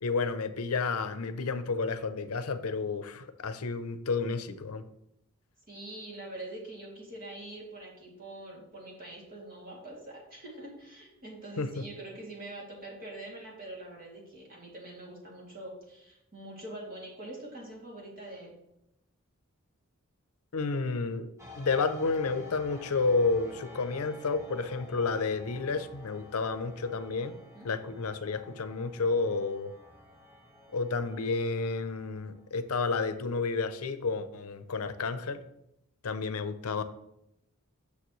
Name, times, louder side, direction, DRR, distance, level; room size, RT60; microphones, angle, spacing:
voice 1, 0.0-4.8 11.6-11.9 20.5-29.7 30.7-35.4 36.0-36.8, left 4 dB, 85° left, 11 dB, 0.6 m, -31 dB
voice 2, 5.7-18.5 27.5-27.7, right 2 dB, 40° right, -4 dB, 2.7 m, -44 dB
sound 1, 21.4-32.6, left 2 dB, 15° right, 1.1 m, -51 dB
9.4 x 6.6 x 3.1 m, 0.82 s
head